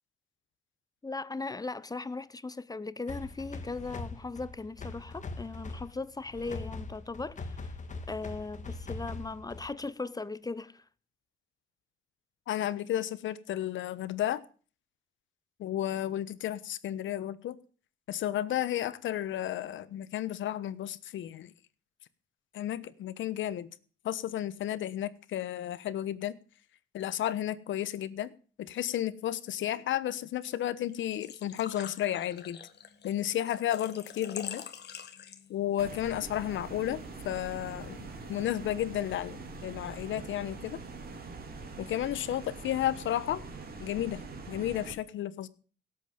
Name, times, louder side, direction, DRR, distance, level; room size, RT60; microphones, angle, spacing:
voice 1, 1.0-7.8 8.1-10.8, left 3 dB, 20° left, 0.7 m, -38 dB
sound 1, 3.1-9.9, left 3 dB, 40° left, 2.0 m, -42 dB
voice 2, 12.5-14.4 15.6-17.6 18.1-21.5 22.5-23.7 24.0-26.3 26.9-28.3 28.6-32.6 33.0-34.6 35.5-40.8 41.8-43.4 43.8-44.2 44.5-45.5, left 12 dB, 75° left, 1.1 m, -32 dB
Engine / Trickle dribble / Fill (with liquid), 30.8-35.7, left 8 dB, 55° left, 1.8 m, -45 dB
sound 2, 35.8-44.9, right 4 dB, 50° right, 3.3 m, -44 dB
17.5 x 8.3 x 5.1 m
cardioid pair, 90°, 20 cm